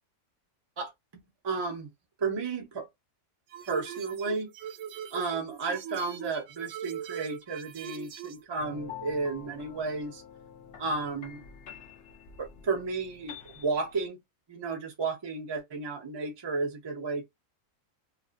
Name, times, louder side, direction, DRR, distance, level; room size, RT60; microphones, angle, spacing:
voice 1, 0.8-1.9 2.2-2.9 3.7-4.5 5.1-10.2 10.8-11.4 12.4-14.2 14.5-17.2, right 4 dB, 45° right, 0.3 m, -33 dB
sound 1, 3.5-8.4, right 9 dB, 70° right, 0.8 m, -41 dB
sound 2, 8.6-14.0, left 8 dB, 65° left, 0.5 m, -47 dB
2.7 x 2.4 x 2.4 m
omnidirectional pair, 1.5 m